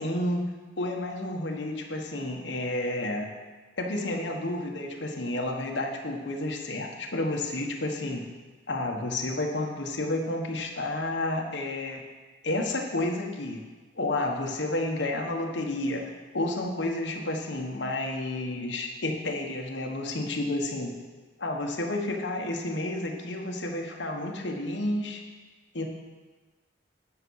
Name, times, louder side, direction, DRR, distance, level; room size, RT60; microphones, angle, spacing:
voice 1, 0.0-3.3 3.8-8.2 8.7-12.0 12.4-13.6 14.0-20.9 21.4-25.2 25.7-25.9, left 1 dB, 65° left, 2 dB, 1.2 m, -31 dB
9.8 x 6.0 x 6.3 m, 1.3 s
head